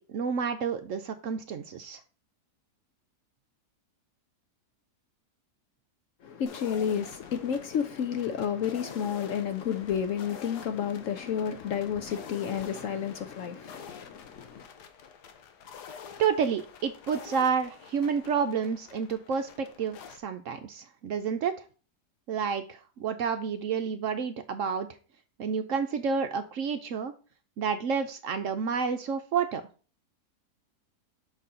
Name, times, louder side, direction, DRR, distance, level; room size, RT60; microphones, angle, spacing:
voice 1, 0.0-2.0 16.2-21.5 22.3-25.0 25.4-27.1 27.6-29.6, right 6 dB, 65° right, 0.8 m, -30 dB
voice 2, 6.2-14.6, left 8 dB, 65° left, 0.8 m, -31 dB
sound 1, 6.5-20.2, left 7 dB, 85° left, 1.4 m, -48 dB
6.2 x 4.2 x 3.6 m
omnidirectional pair, 1.7 m